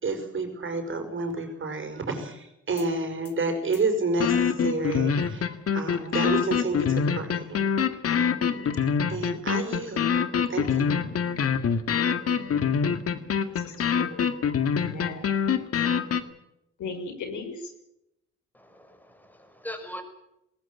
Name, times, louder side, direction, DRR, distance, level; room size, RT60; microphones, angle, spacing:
voice 1, 0.0-7.6 9.1-10.1 10.5-10.9, right 3 dB, 40° right, 6 dB, 5.9 m, -30 dB
sound 1, 2.8-2.9 3.2-3.3 3.7-3.8 4.2-16.2, left 7 dB, 50° left, 2.0 m, -25 dB
voice 2, 13.5-14.3 14.8-15.3 16.8-17.7, left 4 dB, 75° left, 6 dB, 5.8 m, -37 dB
voice 3, 18.5-20.0, left 1 dB, 5° left, 7 dB, 5.5 m, -41 dB
19.5 x 18.5 x 9.2 m, 0.84 s
cardioid pair, 90°, 30 cm